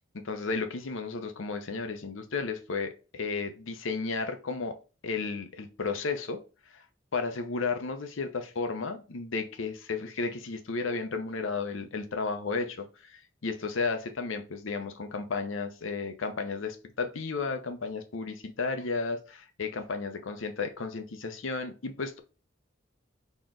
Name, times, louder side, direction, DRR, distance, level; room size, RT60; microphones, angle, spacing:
voice 1, 0.1-4.8 5.0-6.4 6.7-6.8 7.1-22.2, left 4 dB, 85° left, 0.7 m, -33 dB
4.0 x 3.0 x 3.8 m
head